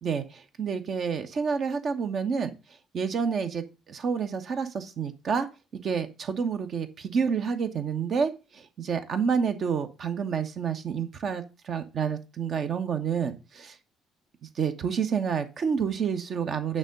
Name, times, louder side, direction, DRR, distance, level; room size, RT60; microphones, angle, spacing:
voice 1, 0.0-2.5 2.9-5.5 5.8-13.8 14.4-16.8, right 6 dB, 50° right, 7 dB, 1.1 m, -29 dB
8.9 x 3.7 x 6.5 m, 0.30 s
figure-of-eight pair, 50°, 0 cm